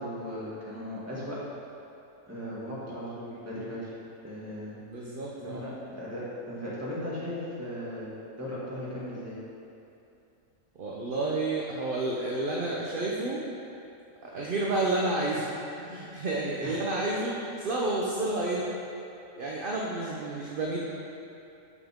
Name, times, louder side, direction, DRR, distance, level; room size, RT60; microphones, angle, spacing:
voice 1, 0.0-1.4 2.3-3.9 4.2-8.1 8.4-9.4 16.6-16.8, left 1 dB, 10° right, -9 dB, 2.0 m, -37 dB
voice 2, 4.8-5.7 10.8-13.5 14.2-18.6 19.4-20.8, right 2 dB, 45° right, -4 dB, 0.9 m, -30 dB
12.0 x 5.8 x 3.7 m, 2.7 s
omnidirectional pair, 1.4 m